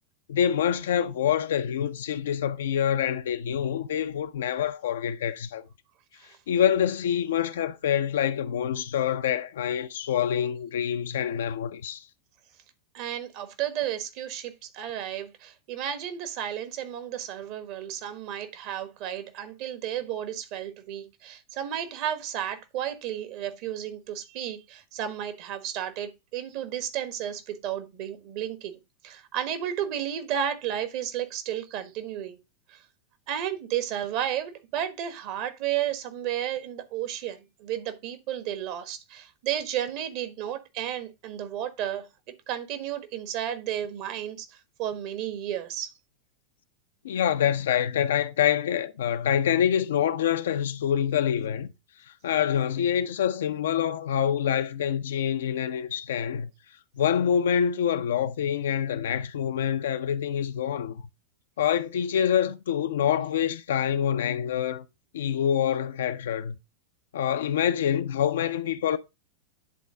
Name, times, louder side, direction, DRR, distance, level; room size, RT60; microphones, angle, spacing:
voice 1, 0.3-5.6 6.5-12.1 47.0-51.7 52.2-56.5 57.0-61.0 61.6-64.8 65.1-66.5 67.1-69.0, left 9 dB, 60° left, 0.6 m, -26 dB
voice 2, 12.9-28.8 29.0-32.4 32.7-32.8 33.3-42.1 42.5-44.5 44.8-45.9, right 10 dB, 45° right, 1.3 m, -32 dB
10.0 x 4.0 x 3.6 m
figure-of-eight pair, 90°, 0 cm